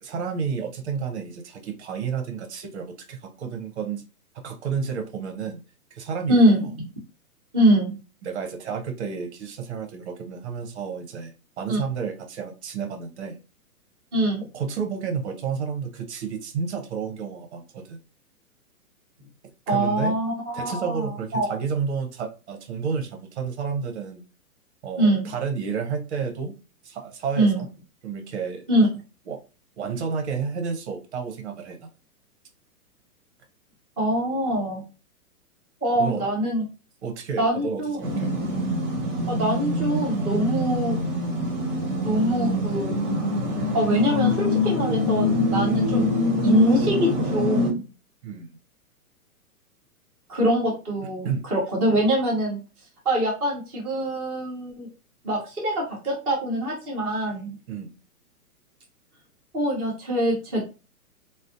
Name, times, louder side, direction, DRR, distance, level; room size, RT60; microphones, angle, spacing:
voice 1, 0.0-4.0 4.3-5.6 5.9-6.7 8.2-13.4 14.5-18.0 19.7-20.1 20.5-24.2 24.8-26.5 26.8-27.7 28.0-28.6 29.3-29.4 29.8-31.9 36.0-36.3 37.0-38.3 45.6-45.9 48.2-48.6 51.2-51.4 57.7-58.0, right 6 dB, 50° right, 4 dB, 0.6 m, -31 dB
voice 2, 6.3-6.7 7.5-8.0 11.7-11.8 14.1-14.4 19.7-21.6 25.0-25.3 27.3-27.6 28.7-28.9 34.0-34.8 35.8-36.6 37.4-38.0 39.3-41.0 42.0-42.9 43.7-46.0 46.4-47.9 50.3-52.6 53.0-54.9 55.2-57.5 59.5-60.6, right 1 dB, ahead, -15 dB, 0.4 m, -23 dB
sound 1, 38.0-47.7, left 1 dB, 15° right, 0.8 m, -24 dB
2.6 x 2.0 x 2.5 m, 0.32 s
hypercardioid pair, 145°, 45 cm